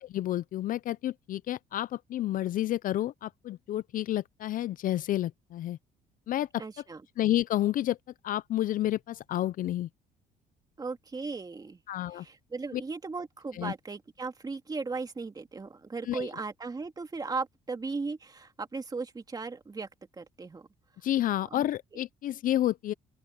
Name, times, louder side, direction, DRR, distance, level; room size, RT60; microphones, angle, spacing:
voice 1, 0.0-5.8 6.3-6.6 7.2-8.0 8.2-9.9 11.9-12.2 12.7-12.8 13.6-13.7 16.1-16.3 21.0-22.9, left 13 dB, 55° left, 0.4 m, -30 dB
voice 2, 6.6-7.0 10.8-11.8 12.1-20.7 21.4-21.7, right 4 dB, 20° right, 2.4 m, -37 dB
open air
cardioid pair, 110°, 17 cm